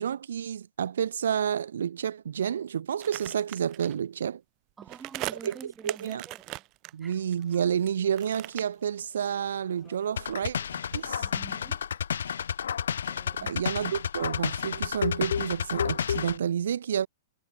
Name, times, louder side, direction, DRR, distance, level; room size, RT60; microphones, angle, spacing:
voice 1, 0.0-4.4 5.4-5.5 5.8-6.2 6.9-10.6 10.9-11.2 13.4-17.1, right 8 dB, 80° right, 0.8 m, -30 dB
sound 1, 3.0-4.0 4.8-7.9 8.2-9.5 9.8-11.4 11.7-11.8, right 22 dB, 30° right, 0.5 m, -40 dB
voice 2, 4.8-6.6 7.0-7.2 11.1-11.8 13.1-13.5, right 6 dB, 10° right, 6.6 m, -47 dB
sound 2, 7.0-12.0, left 12 dB, 20° left, 7.1 m, -63 dB
sound 3, 10.2-16.4, left 8 dB, 85° left, 0.4 m, -31 dB
hypercardioid pair, 150°, 0 cm